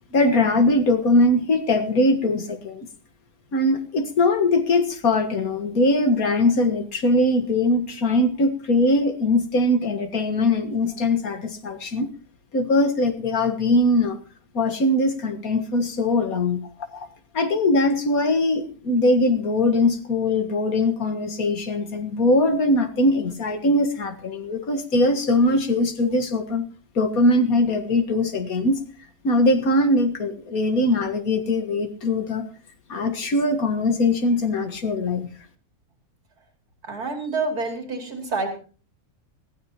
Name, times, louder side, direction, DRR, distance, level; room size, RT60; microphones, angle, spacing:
voice 1, 0.1-2.9 3.5-12.1 12.5-14.2 14.5-16.6 16.9-17.1 17.3-26.7 27.0-28.8 29.2-32.5 32.9-35.3, left 2 dB, 70° left, 7 dB, 2.1 m, -21 dB
voice 2, 36.8-38.6, right 3 dB, 85° right, 3 dB, 3.5 m, -28 dB
20.0 x 15.5 x 2.9 m, 0.38 s
omnidirectional pair, 1.6 m